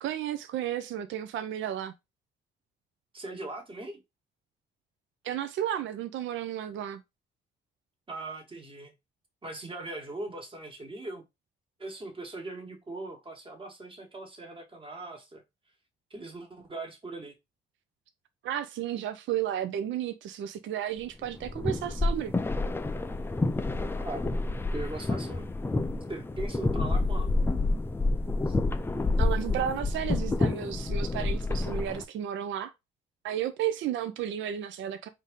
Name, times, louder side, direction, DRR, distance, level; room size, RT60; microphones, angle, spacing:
voice 1, 0.0-1.9 5.2-7.0 18.4-22.3 29.2-32.7 33.2-35.1, right 10 dB, 70° right, 0.5 m, -33 dB
voice 2, 3.1-4.0 8.1-8.9 9.4-11.2 11.8-15.4 16.1-17.3 23.9-25.5 26.1-27.3 28.5-28.6, right 2 dB, 25° right, 1.3 m, -40 dB
sound 1, 21.3-32.0, left 2 dB, 10° left, 0.4 m, -29 dB
4.0 x 2.6 x 3.5 m
cardioid pair, 90°, 20 cm